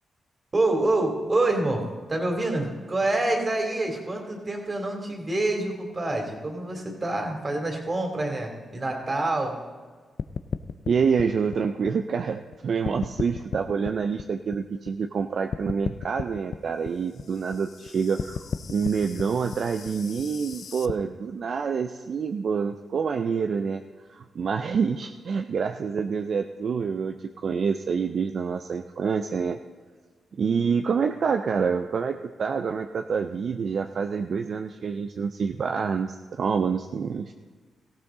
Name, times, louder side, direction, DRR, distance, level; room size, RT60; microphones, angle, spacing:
voice 1, 0.5-9.6, right 2 dB, 35° right, 2 dB, 2.9 m, -27 dB
sound 1, 10.2-12.5 12.8-15.2 15.5-20.9, left 7 dB, 70° left, 0.5 m, -35 dB
voice 2, 10.9-23.8 24.1-27.2 27.4-29.6 30.4-37.3, right 6 dB, 65° right, 6 dB, 0.5 m, -27 dB
17.5 x 15.0 x 3.8 m, 1.4 s
supercardioid pair, 55°, 0 cm